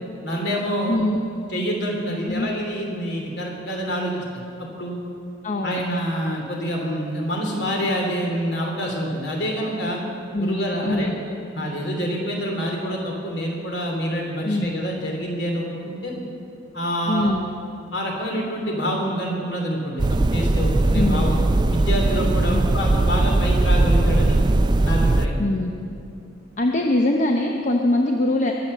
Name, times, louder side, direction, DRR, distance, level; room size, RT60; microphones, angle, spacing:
voice 1, 0.2-1.0 1.5-5.0 5.6-10.0 10.4-11.2 11.4-16.2 16.7-17.4 17.9-21.4 21.7-24.4 24.8-25.5, equal, 60° left, 0 dB, 3.0 m, -27 dB
voice 2, 0.9-1.2 2.3-2.5 5.4-5.8 10.3-11.1 14.4-14.7 17.1-17.4 20.9-21.4 22.5-22.6 25.4-25.7 26.6-28.5, left 1 dB, 40° left, 2 dB, 0.8 m, -22 dB
sound 1, 20.0-25.3, right 2 dB, 25° right, 0.4 m, -19 dB
22.5 x 7.7 x 6.6 m, 2.6 s
head